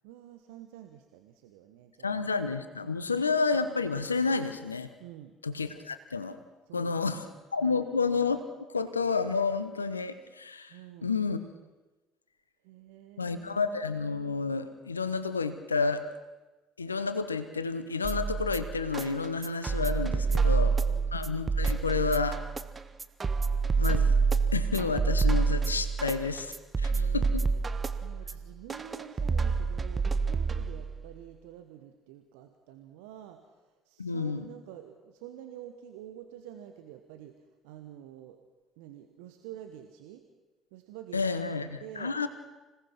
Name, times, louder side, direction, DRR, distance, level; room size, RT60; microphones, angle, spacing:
voice 1, 0.0-2.3 2.8-3.4 5.0-5.4 5.7-5.8 6.7-7.3 7.6-7.8 10.7-11.1 12.6-13.7 20.0-21.1 26.9-27.6 28.0-37.4 37.6-38.4 38.8-40.2 40.7-41.4 41.8-42.1, right 11 dB, 70° right, 6 dB, 1.3 m, -48 dB
voice 2, 2.0-4.9 5.4-6.4 6.7-7.2 7.5-8.4 8.7-10.8 11.0-11.4 13.2-16.1 16.8-20.7 21.1-22.4 23.8-24.2 24.5-27.5 34.0-34.5 41.1-42.3, left 4 dB, 90° left, 11 dB, 1.0 m, -30 dB
sound 1, 18.0-31.0, right 4 dB, 30° right, 1.2 m, -28 dB
26.0 x 18.0 x 6.1 m, 1.1 s
figure-of-eight pair, 50°, 0 cm